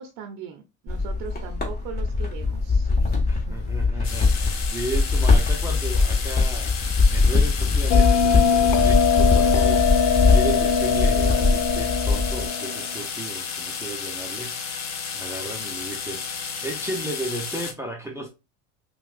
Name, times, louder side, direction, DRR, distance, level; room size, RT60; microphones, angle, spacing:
voice 1, 0.0-2.9 3.5-3.6, right 7 dB, 55° right, 0.7 m, -39 dB
sound 1, 0.9-12.5, left 3 dB, 25° left, 1.6 m, -21 dB
voice 2, 3.3-18.3, right 2 dB, 5° right, 0.7 m, -35 dB
sound 2, 4.0-17.7, left 6 dB, 40° left, 1.0 m, -33 dB
Bell, 7.9-13.0, left 7 dB, 60° left, 0.7 m, -22 dB
5.5 x 2.4 x 2.5 m
hypercardioid pair, 90°, 41 cm